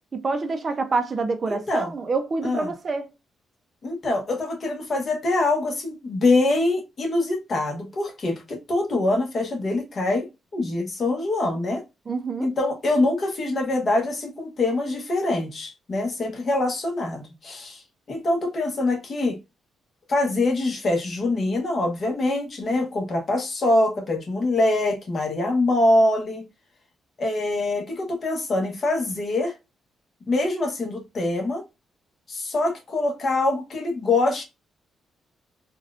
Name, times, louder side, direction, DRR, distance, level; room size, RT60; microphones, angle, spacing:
voice 1, 0.1-3.1 12.1-12.5, right 3 dB, 35° right, 0.5 m, -27 dB
voice 2, 1.5-1.9 2.4-2.7 3.8-11.8 12.4-17.8 18.1-19.4 20.1-26.5 27.2-29.5 30.3-31.6 32.3-34.4, left 2 dB, 45° left, 1.0 m, -24 dB
4.2 x 2.3 x 2.4 m
cardioid pair, 120°, 0 cm